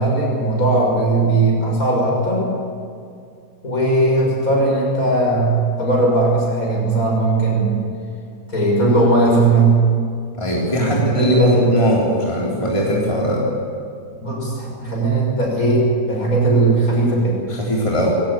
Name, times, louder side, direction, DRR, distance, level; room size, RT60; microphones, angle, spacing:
voice 1, 0.0-2.5 3.6-7.8 8.5-9.9 10.7-11.7 14.2-17.5, right 2 dB, 55° left, -2 dB, 7.2 m, -18 dB
voice 2, 10.4-13.5 17.5-18.1, equal, 20° left, -4 dB, 3.5 m, -20 dB
22.0 x 18.0 x 8.6 m, 2.3 s
omnidirectional pair, 1.8 m